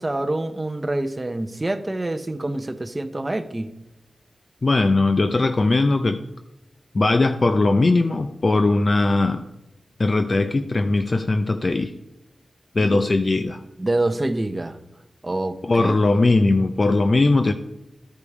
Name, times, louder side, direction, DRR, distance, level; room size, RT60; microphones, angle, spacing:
voice 1, 0.0-3.7 12.8-13.0 13.8-14.8 15.2-16.0, right 2 dB, 25° right, 7 dB, 0.6 m, -26 dB
voice 2, 4.6-6.2 6.9-9.4 10.0-11.9 12.7-13.6 15.6-17.5, left 2 dB, 45° left, 8 dB, 0.5 m, -19 dB
12.5 x 5.2 x 4.8 m, 0.92 s
wide cardioid pair, 80°, 0 cm